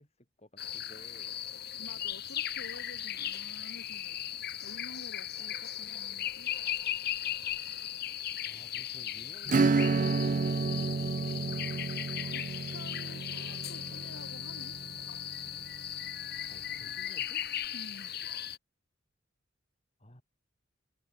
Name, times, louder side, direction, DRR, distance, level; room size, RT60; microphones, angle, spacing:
voice 1, 0.0-1.4 8.4-9.9 10.2-11.6 16.5-17.4 20.0-20.2, left 1 dB, 30° left, 8.0 m, -56 dB
sound 1, 0.6-18.6, left 11 dB, 50° left, 2.5 m, -37 dB
voice 2, 1.7-6.5 12.3-14.8 17.7-18.1, left 1 dB, 75° left, 4.9 m, -50 dB
Acoustic guitar / Strum, 9.5-15.7, right 4 dB, 40° right, 0.4 m, -31 dB
Wind instrument woodwind instrument, 13.3-18.1, right 3 dB, 75° right, 6.7 m, -59 dB
head